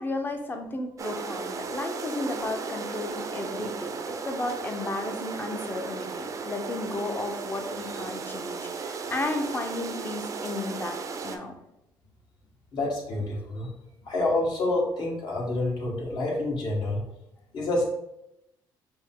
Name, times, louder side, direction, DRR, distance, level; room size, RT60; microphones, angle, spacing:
voice 1, 0.0-11.5, left 2 dB, 25° left, 4 dB, 0.6 m, -33 dB
sound 1, 1.0-11.4, right 5 dB, 40° right, 0.4 m, -35 dB
voice 2, 12.7-13.7 14.0-17.0 17.5-17.8, left 2 dB, 60° left, -3 dB, 1.4 m, -28 dB
5.1 x 2.0 x 3.6 m, 0.85 s
cardioid pair, 100°, 8 cm